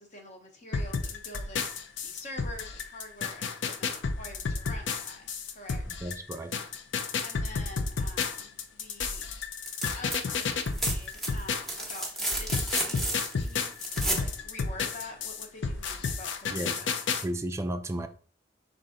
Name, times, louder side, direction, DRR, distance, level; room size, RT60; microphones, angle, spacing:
voice 1, 0.0-5.8 7.2-9.3 9.9-13.7 14.2-17.0, left 2 dB, 40° left, 0.9 m, -46 dB
sound 1, 0.7-11.9 12.3-17.2, left 5 dB, 75° left, 0.5 m, -31 dB
voice 2, 5.9-6.5 16.5-16.8 17.2-18.1, right 1 dB, 15° right, 0.3 m, -33 dB
sound 2, 9.6-10.2 10.5-14.3 15.9-16.0, right 1 dB, ahead, 0.8 m, -32 dB
5.4 x 2.6 x 3.7 m
head